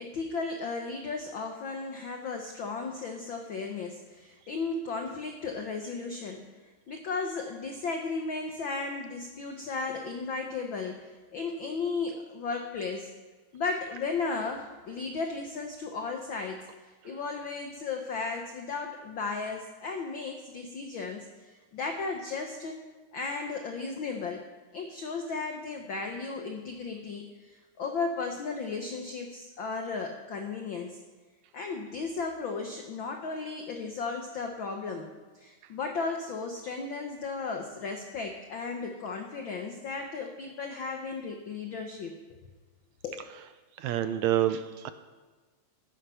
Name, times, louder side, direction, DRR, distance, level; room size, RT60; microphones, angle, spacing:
voice 1, 0.0-6.5 6.9-13.1 13.5-22.8 23.1-24.4 24.7-31.0 31.5-35.1 35.3-42.1 43.0-43.2, left 4 dB, 85° left, 3 dB, 1.0 m, -35 dB
voice 2, 43.8-44.9, right 11 dB, 80° right, 10 dB, 1.7 m, -27 dB
14.0 x 10.0 x 5.6 m, 1.3 s
omnidirectional pair, 3.6 m